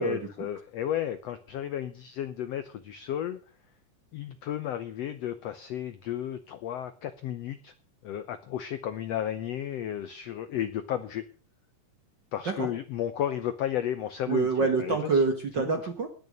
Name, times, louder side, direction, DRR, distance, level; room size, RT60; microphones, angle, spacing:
voice 1, 0.0-3.4 4.1-7.7 8.0-11.2 12.3-14.5 14.8-15.2 15.7-15.8, left 11 dB, 75° left, 12 dB, 1.5 m, -33 dB
voice 2, 14.3-16.1, right 4 dB, 50° right, 6 dB, 1.3 m, -26 dB
19.0 x 6.8 x 6.4 m, 0.37 s
omnidirectional pair, 3.8 m